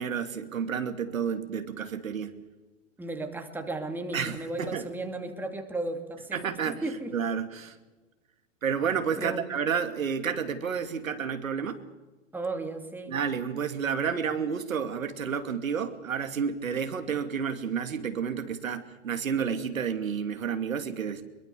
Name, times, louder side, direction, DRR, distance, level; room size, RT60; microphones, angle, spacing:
voice 1, 0.0-2.4 4.1-4.9 6.3-6.8 7.1-7.8 8.6-11.8 13.1-21.2, right 7 dB, 90° right, 7 dB, 2.7 m, -30 dB
voice 2, 3.0-7.1 9.2-9.4 12.3-13.2, right 2 dB, 5° right, 4 dB, 2.5 m, -35 dB
24.0 x 22.0 x 7.0 m, 1.2 s
hypercardioid pair, 130°, 39 cm